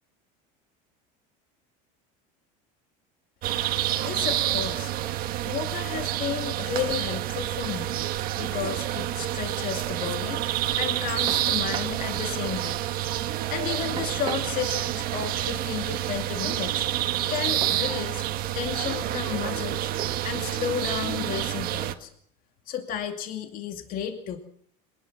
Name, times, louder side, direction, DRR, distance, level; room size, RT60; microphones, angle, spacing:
sound 1, 3.4-21.9, right 13 dB, 50° right, 1.6 m, -28 dB
voice 1, 4.0-8.0 8.4-10.4 10.8-12.8 13.5-16.9 17.3-18.2 18.5-19.9 20.2-22.1 22.7-24.4, left 8 dB, 45° left, 5 dB, 2.5 m, -33 dB
sound 2, 10.0-10.2 11.3-12.0 14.0-15.0 17.6-17.9 18.6-19.1 20.0-20.4, right 7 dB, 25° right, 2.3 m, -39 dB
23.0 x 20.0 x 6.0 m, 0.62 s
supercardioid pair, 140°, 20 cm